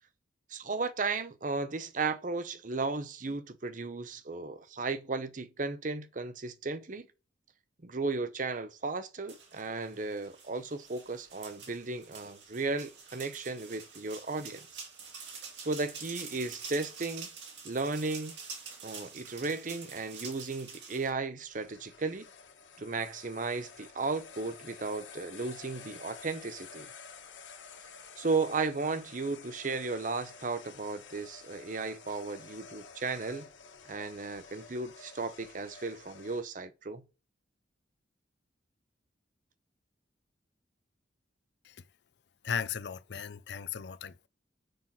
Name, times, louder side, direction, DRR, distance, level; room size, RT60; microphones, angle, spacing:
voice 1, 0.5-7.1 7.8-14.7 15.6-17.3 17.6-18.4 18.8-22.3 22.8-26.9 28.2-33.5 33.9-37.0, right 3 dB, 45° right, 0.7 m, -35 dB
sound 1, 9.3-21.1, right 5 dB, 70° right, 2.2 m, -47 dB
sound 2, 21.4-36.4, left 5 dB, 90° left, 1.6 m, -51 dB
voice 2, 42.4-44.3, left 7 dB, 65° left, 0.6 m, -36 dB
6.5 x 5.7 x 5.9 m
head